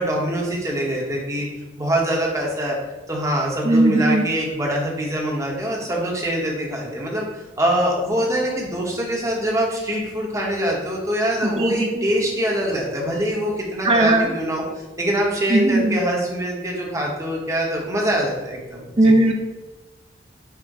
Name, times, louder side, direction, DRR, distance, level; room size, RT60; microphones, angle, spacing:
voice 1, 0.0-1.5 1.8-2.8 3.1-19.1, right 1 dB, 20° right, -2 dB, 0.9 m, -24 dB
voice 2, 3.6-4.3 11.4-12.1 13.8-14.3 15.5-16.0 19.0-19.3, right 1 dB, 35° right, 3 dB, 0.6 m, -18 dB
5.9 x 2.1 x 4.1 m, 1.1 s
head